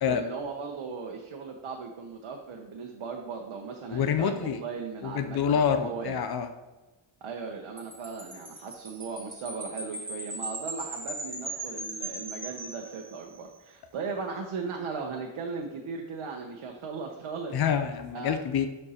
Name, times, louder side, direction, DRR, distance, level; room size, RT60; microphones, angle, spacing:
voice 1, 0.0-6.2 7.2-17.5 18.1-18.4, right 5 dB, 80° right, 1 dB, 0.9 m, -37 dB
voice 2, 3.9-4.6 5.0-6.5 17.5-18.7, left 7 dB, 50° left, 8 dB, 0.5 m, -27 dB
Wind chime, 7.8-13.5, right 2 dB, 20° right, 1.4 m, -39 dB
11.5 x 4.4 x 2.9 m, 1.1 s
wide cardioid pair, 160°, 48 cm